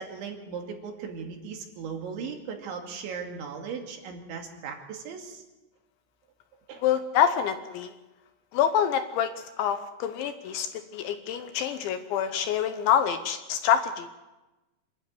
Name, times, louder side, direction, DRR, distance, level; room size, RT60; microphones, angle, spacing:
voice 1, 0.0-5.4 6.7-6.8, right 6 dB, 65° right, 2 dB, 4.6 m, -37 dB
voice 2, 6.8-7.9 8.5-14.1, left 9 dB, 75° left, 9 dB, 3.0 m, -26 dB
26.5 x 12.5 x 9.5 m, 1.1 s
omnidirectional pair, 5.9 m